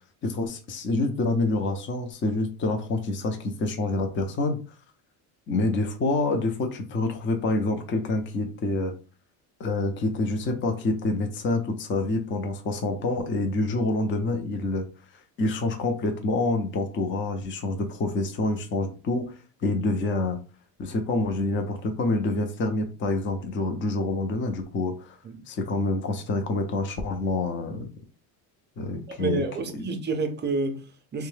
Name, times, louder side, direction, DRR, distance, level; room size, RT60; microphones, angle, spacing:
voice 1, 0.2-4.6 5.5-8.9 9.6-14.9 15.4-19.3 19.6-20.4 20.8-25.2 25.5-27.9 28.8-29.4 29.7-29.8, left 2 dB, 25° left, 0.5 m, -27 dB
voice 2, 29.1-31.3, right 3 dB, 25° right, 0.4 m, -29 dB
2.7 x 2.2 x 3.2 m
cardioid pair, 125°, 45 cm